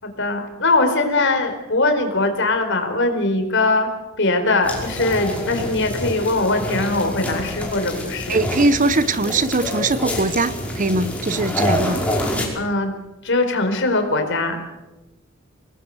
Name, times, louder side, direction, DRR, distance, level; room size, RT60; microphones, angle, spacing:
voice 1, 0.0-3.9 4.2-8.4 12.5-12.9 13.2-14.6, left 2 dB, 55° left, 6 dB, 4.5 m, -21 dB
sound 1, 4.6-12.5, left 1 dB, 5° left, 5.4 m, -27 dB
voice 2, 8.3-12.0, right 2 dB, 35° right, 14 dB, 1.0 m, -21 dB
26.5 x 20.0 x 7.9 m, 1.1 s
head